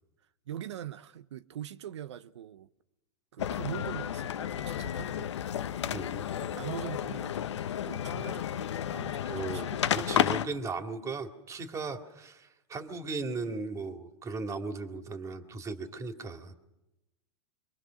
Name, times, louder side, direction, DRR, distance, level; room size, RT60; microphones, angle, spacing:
voice 1, 0.5-2.7 3.3-5.4 6.3-10.2, right 11 dB, 85° right, 0.8 m, -43 dB
sound 1, 3.4-10.4, left 10 dB, 85° left, 1.0 m, -32 dB
voice 2, 5.9-6.2 9.3-16.5, right 3 dB, 20° right, 2.3 m, -37 dB
25.5 x 22.5 x 6.4 m
hypercardioid pair, 125°, 14 cm